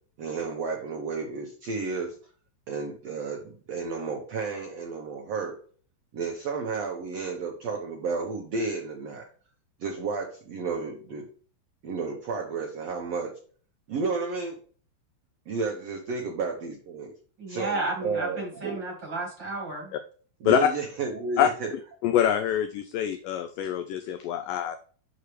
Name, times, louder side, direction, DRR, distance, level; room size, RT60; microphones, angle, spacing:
voice 1, 0.2-2.2 2.7-5.6 6.1-9.2 9.8-11.3 11.8-13.3 13.9-14.6 15.5-17.1 17.5-18.8 20.4-21.7, right 4 dB, 75° right, 1 dB, 1.5 m, -32 dB
voice 2, 17.4-19.9, right 2 dB, 45° right, 0 dB, 1.5 m, -32 dB
voice 3, 22.0-24.8, left 9 dB, 85° left, 8 dB, 1.9 m, -25 dB
6.7 x 6.5 x 3.2 m, 0.43 s
omnidirectional pair, 4.5 m